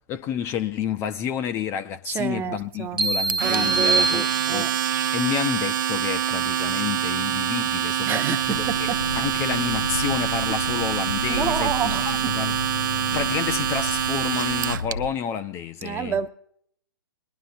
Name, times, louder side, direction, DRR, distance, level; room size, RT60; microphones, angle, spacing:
voice 1, 0.1-4.7 5.1-8.9 9.1-12.5 13.1-16.2, left 8 dB, 20° left, 0.5 m, -30 dB
voice 2, 2.1-3.0 3.4-4.7 8.1-9.0 11.3-12.3 15.8-16.3, right 8 dB, 15° right, 0.7 m, -29 dB
sound 1, 3.0-4.9, right 3 dB, 90° right, 1.0 m, -24 dB
Domestic sounds home sounds, 3.3-14.9, right 10 dB, 55° right, 0.5 m, -25 dB
Accelerating revving vroom, 8.5-15.1, left 4 dB, 75° left, 0.6 m, -33 dB
22.0 x 11.0 x 2.5 m
figure-of-eight pair, 125°, 12 cm